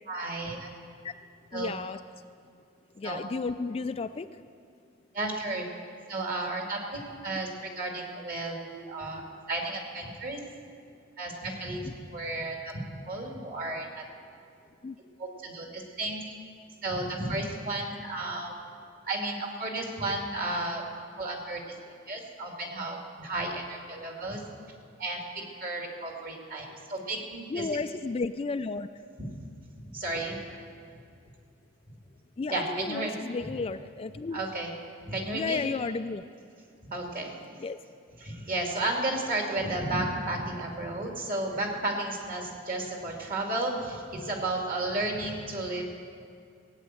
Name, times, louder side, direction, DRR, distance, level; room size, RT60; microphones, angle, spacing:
voice 1, 0.1-0.7 1.5-1.7 3.0-3.2 5.1-5.6 6.1-10.4 11.2-12.7 13.1-14.0 15.2-16.2 16.8-18.5 19.1-20.8 21.2-21.6 22.1-24.4 25.0-25.2 25.6-27.7 29.2-29.3 29.9-30.4 32.5-33.1 33.4-33.5 34.3-34.7 35.0-35.6 36.9-37.3 38.2-45.8, right 2 dB, 45° right, 1 dB, 2.6 m, -33 dB
voice 2, 1.5-2.0 3.0-4.3 14.8-15.0 27.5-28.9 32.4-34.4 35.3-36.2 37.6-37.8, left 4 dB, 30° left, 10 dB, 0.3 m, -33 dB
17.5 x 9.1 x 7.7 m, 2.3 s
head